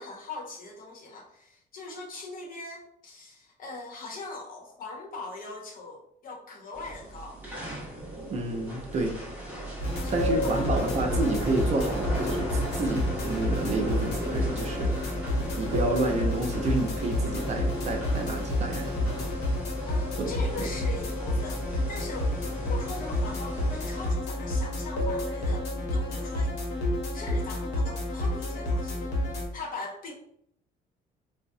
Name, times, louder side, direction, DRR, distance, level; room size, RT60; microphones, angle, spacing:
voice 1, 0.0-7.4 9.9-10.7 19.8-29.1 29.5-30.1, left 3 dB, 55° left, 1 dB, 0.8 m, -41 dB
Church Organ On A, 6.7-24.1, right 1 dB, 10° right, 0.8 m, -37 dB
voice 2, 8.3-9.2 10.1-15.1 15.6-19.1 20.2-20.3 20.6-20.7, right 2 dB, 40° right, 2 dB, 0.6 m, -30 dB
sound 1, 9.8-29.5, left 1 dB, 80° left, 0.9 m, -29 dB
3.5 x 2.0 x 2.6 m, 0.69 s
cardioid pair, 110°, 17 cm